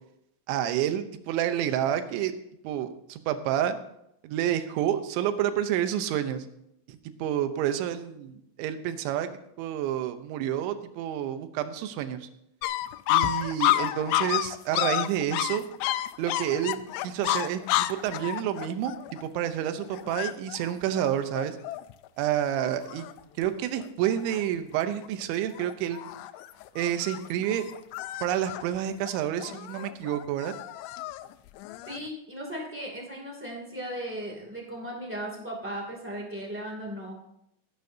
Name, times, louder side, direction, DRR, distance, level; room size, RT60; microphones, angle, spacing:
voice 1, 0.5-2.3 2.6-3.8 4.2-6.5 6.9-9.3 9.6-12.2 13.1-15.7 16.2-18.9 19.2-21.6 22.2-23.1 23.4-26.1 26.8-27.6 28.2-30.5, right 10 dB, 80° right, 9 dB, 3.2 m, -29 dB
sound 1, 12.6-22.1 22.5-22.6 22.8-23.5 23.8-24.4 24.9-25.2 25.6-32.1, left 15 dB, 85° left, 2.5 m, -31 dB
voice 2, 31.8-37.1, equal, 5° right, -2 dB, 0.9 m, -37 dB
21.5 x 11.0 x 2.8 m, 0.79 s
omnidirectional pair, 5.4 m